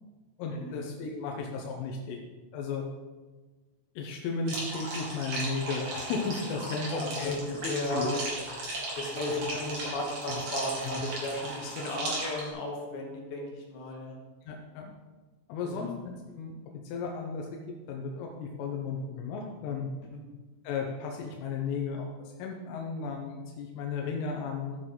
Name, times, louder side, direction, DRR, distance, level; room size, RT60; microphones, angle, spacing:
voice 1, 0.4-2.2 2.5-2.9 4.0-7.7 7.9-8.1 9.5-9.6 10.3-10.4 10.9-11.0 14.4-14.9 15.5-16.6 16.9-17.6 17.9-19.9 20.7-22.1 22.4-24.8, left 4 dB, 90° left, 0 dB, 3.6 m, -34 dB
sound 1, 4.5-12.5, right 1 dB, 50° right, 2.8 m, -36 dB
voice 2, 6.9-8.2 9.0-14.2 15.6-16.0 20.1-20.2, left 1 dB, 70° left, 0 dB, 2.5 m, -35 dB
14.5 x 6.2 x 3.8 m, 1.3 s
omnidirectional pair, 5.7 m